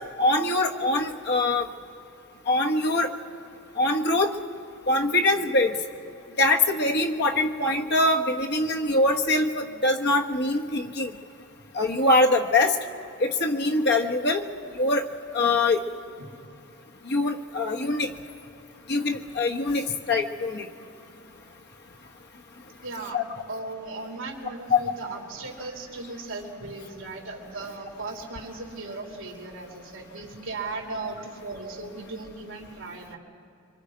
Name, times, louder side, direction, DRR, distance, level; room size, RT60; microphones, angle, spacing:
voice 1, 0.2-1.7 2.5-3.1 3.8-4.3 4.9-5.8 6.4-11.1 11.7-12.8 13.2-14.4 14.7-15.0 15.3-15.8 17.0-18.1 18.9-20.7 23.1-23.2 24.7-24.8, left 2 dB, 50° left, 2 dB, 1.3 m, -23 dB
voice 2, 22.8-23.2 23.5-33.2, right 3 dB, 60° right, -1 dB, 3.6 m, -37 dB
27.0 x 24.5 x 5.0 m, 2.6 s
head